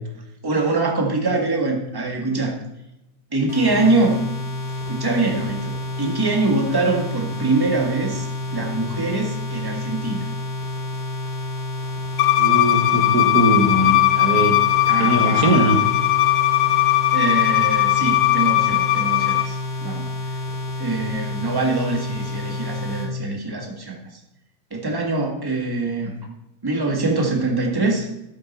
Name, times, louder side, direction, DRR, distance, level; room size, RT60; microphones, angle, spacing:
voice 1, 0.4-2.6 3.3-4.2 4.8-8.3 8.5-10.3 14.9-15.6 16.7-16.8 17.1-20.1 20.8-23.9 24.7-26.2 26.6-28.1, right 3 dB, 15° right, 1 dB, 1.7 m, -23 dB
sound 1, 3.5-23.1, left 2 dB, 30° left, 2.4 m, -29 dB
Bowed string instrument, 12.2-19.5, left 15 dB, 85° left, 1.4 m, -18 dB
voice 2, 12.4-14.6 15.0-15.8, right 1 dB, 55° right, 5 dB, 1.7 m, -20 dB
13.0 x 7.5 x 4.4 m, 0.91 s
omnidirectional pair, 2.0 m